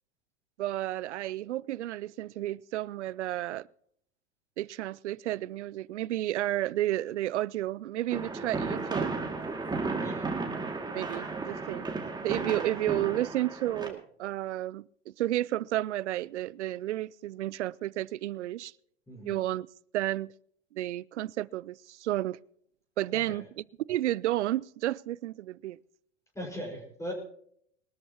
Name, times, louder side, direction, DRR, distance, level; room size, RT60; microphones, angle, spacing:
voice 1, 0.6-3.7 4.6-9.1 10.9-11.9 12.2-18.7 19.2-19.7 19.9-20.3 20.7-22.4 23.0-25.8, right 14 dB, 75° right, 0.5 m, -32 dB
sound 1, 8.1-13.9, right 3 dB, 10° right, 2.3 m, -34 dB
voice 2, 10.0-10.4 19.1-19.4 23.1-23.4 26.3-27.1, equal, 10° left, 5.3 m, -39 dB
22.0 x 13.0 x 2.9 m
hypercardioid pair, 90°, 35 cm